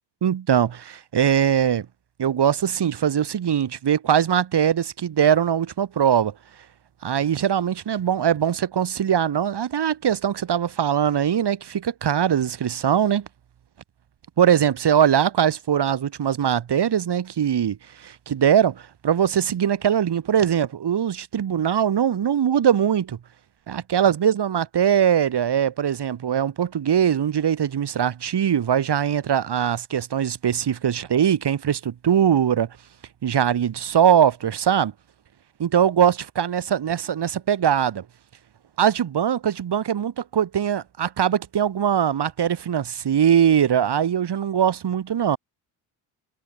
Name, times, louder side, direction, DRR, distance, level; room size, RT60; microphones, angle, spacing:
voice 1, 0.2-1.9 2.2-6.3 7.0-13.3 14.4-23.2 23.7-32.7 33.2-34.9 35.6-38.0 38.8-45.4, right 9 dB, 55° right, 6.8 m, -21 dB
supercardioid pair, 70°, 48 cm